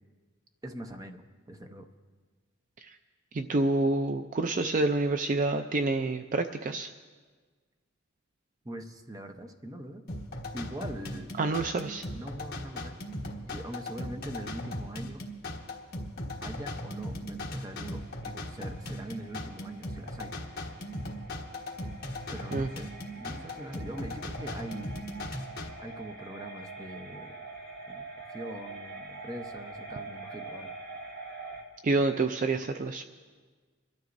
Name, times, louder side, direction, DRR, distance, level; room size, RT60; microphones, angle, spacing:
voice 1, 0.6-1.2 1.5-1.9 8.6-10.0 10.5-11.3 12.1-12.9 13.5-15.2 16.4-20.3 22.3-22.9 23.2-24.9 25.8-27.4 27.9-28.1 28.3-30.7, right 1 dB, 20° right, 6 dB, 0.7 m, -42 dB
voice 2, 3.3-6.9 11.4-12.1 22.5-22.7 31.8-33.0, right 2 dB, 40° right, 7 dB, 0.4 m, -28 dB
sound 1, 10.1-25.7, left 1 dB, 50° left, 1.4 m, -38 dB
sound 2, 17.0-31.6, right 3 dB, 55° right, 2.7 m, -45 dB
28.0 x 12.5 x 2.6 m, 1.5 s
head